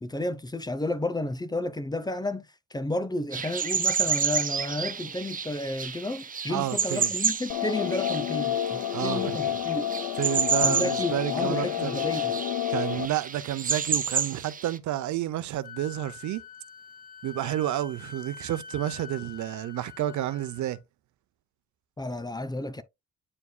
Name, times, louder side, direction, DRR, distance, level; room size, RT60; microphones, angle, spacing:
voice 1, 0.0-9.9 10.6-12.4 22.0-22.8, left 1 dB, 15° left, 0.7 m, -32 dB
sound 1, 3.3-14.8, right 6 dB, 30° right, 0.7 m, -30 dB
voice 2, 6.5-7.1 8.9-9.4 10.2-12.0 12.7-16.4 17.2-20.8, right 13 dB, 70° right, 0.7 m, -30 dB
sound 2, 7.5-13.1, left 11 dB, 70° left, 0.5 m, -29 dB
Wind instrument woodwind instrument, 15.6-20.8, left 6 dB, 30° left, 1.3 m, -45 dB
9.6 x 4.6 x 2.2 m
cardioid pair, 90°, 30 cm